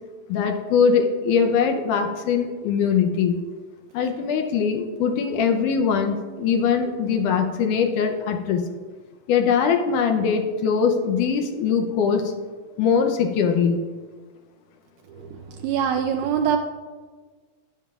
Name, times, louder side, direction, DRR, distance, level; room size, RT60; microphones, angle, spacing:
voice 1, 0.3-3.4 3.9-8.6 9.3-12.3 12.8-13.8, left 6 dB, 75° left, 4 dB, 1.9 m, -21 dB
voice 2, 15.6-16.6, right 8 dB, 90° right, 5 dB, 1.7 m, -22 dB
13.0 x 9.3 x 2.4 m, 1.4 s
omnidirectional pair, 4.1 m